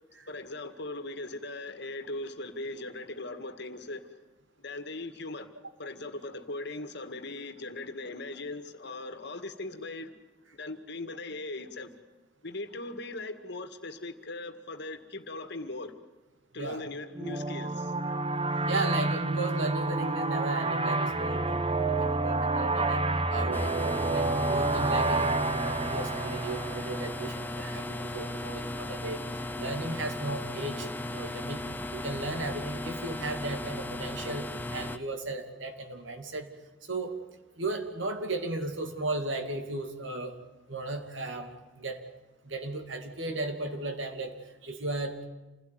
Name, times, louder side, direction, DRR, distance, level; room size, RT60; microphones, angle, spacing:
voice 1, 0.3-4.2 4.6-5.5 5.8-10.1 10.5-11.9 12.4-15.9 16.5-17.9, left 2 dB, 60° left, 2.0 m, -39 dB
sound 1, 17.1-27.5, right 2 dB, 30° right, 1.0 m, -29 dB
voice 2, 18.5-23.0 23.3-31.6 31.9-36.5 36.8-37.2 37.6-40.4 40.7-42.0 42.4-45.2, right 2 dB, 70° right, 2.7 m, -36 dB
sound 2, 23.5-35.0, left 1 dB, 10° left, 1.0 m, -36 dB
28.0 x 17.0 x 9.4 m
head